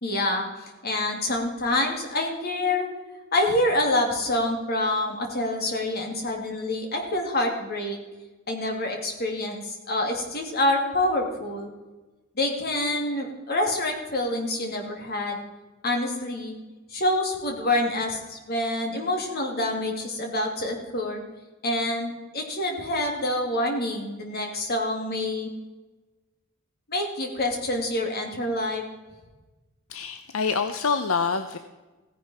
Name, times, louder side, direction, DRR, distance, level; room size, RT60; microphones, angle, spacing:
voice 1, 0.0-2.9 3.3-8.0 8.5-11.7 12.4-15.4 15.8-16.5 16.9-21.2 21.6-25.5 26.9-28.8, left 1 dB, 50° left, 2 dB, 2.7 m, -27 dB
voice 2, 29.9-31.6, left 5 dB, 75° left, 9 dB, 0.7 m, -26 dB
16.0 x 10.5 x 4.4 m, 1.2 s
head